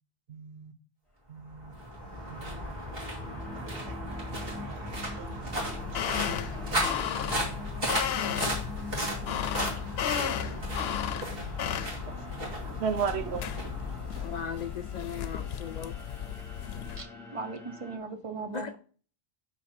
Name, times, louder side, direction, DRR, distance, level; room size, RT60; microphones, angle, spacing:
voice 1, 0.3-0.7 1.3-1.7 2.3-2.7 3.3-7.9 8.2-8.7 9.2-9.8 10.3-10.9 11.3-11.5 12.1-12.3 12.6-13.5, right 6 dB, 90° right, 1.1 m, -39 dB
sound 1, 1.5-14.8, equal, 65° right, 3.0 m, -35 dB
sound 2, 1.7-18.0, left 2 dB, ahead, 1.9 m, -47 dB
sound 3, 5.6-17.0, left 9 dB, 80° left, 0.8 m, -35 dB
voice 2, 14.2-16.0 18.5-18.7, left 7 dB, 55° left, 0.5 m, -37 dB
voice 3, 16.9-18.8, right 4 dB, 35° right, 0.9 m, -39 dB
5.9 x 4.4 x 6.4 m
omnidirectional pair, 1.0 m